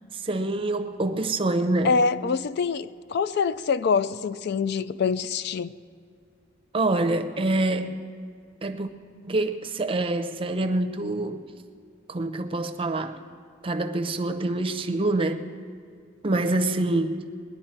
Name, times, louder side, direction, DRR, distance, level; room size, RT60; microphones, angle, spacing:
voice 1, 0.1-2.0 6.7-7.9 8.6-8.9 9.2-11.4 12.1-13.2 13.6-15.5 16.2-17.2, right 2 dB, 25° right, 7 dB, 0.6 m, -26 dB
voice 2, 1.8-5.7, left 5 dB, 55° left, 14 dB, 0.4 m, -25 dB
20.0 x 10.5 x 4.4 m, 2.2 s
head